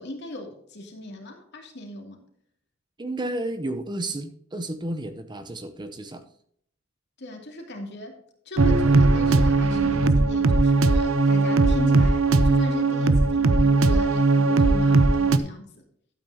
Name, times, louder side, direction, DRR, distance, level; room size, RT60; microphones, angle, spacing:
voice 1, 0.0-2.3 7.2-8.2 8.5-15.9, left 1 dB, 55° left, 2 dB, 2.6 m, -38 dB
voice 2, 3.0-6.2, right 1 dB, 20° right, 8 dB, 0.7 m, -32 dB
sound 1, 8.6-15.4, right 3 dB, 80° right, 0.7 m, -19 dB
12.0 x 8.9 x 2.8 m, 0.65 s
head